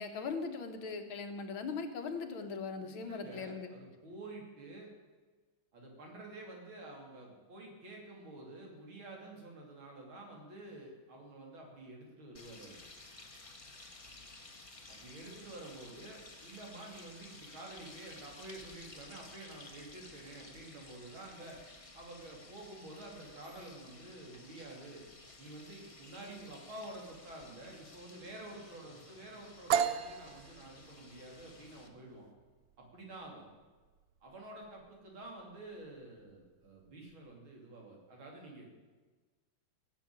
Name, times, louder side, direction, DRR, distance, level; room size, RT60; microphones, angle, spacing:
voice 1, 0.0-3.7, left 4 dB, 85° left, 6 dB, 2.2 m, -39 dB
voice 2, 2.8-4.9 5.7-12.8 14.9-21.6 21.9-25.0 25.4-32.3 32.8-33.5 34.2-38.7, right 2 dB, 90° right, 0 dB, 3.9 m, -49 dB
sound 1, 12.3-31.9, left 2 dB, 20° left, 1.1 m, -54 dB
sound 2, 29.7-37.3, right 8 dB, 65° right, 1.0 m, -38 dB
17.0 x 7.4 x 8.9 m, 1.3 s
omnidirectional pair, 2.2 m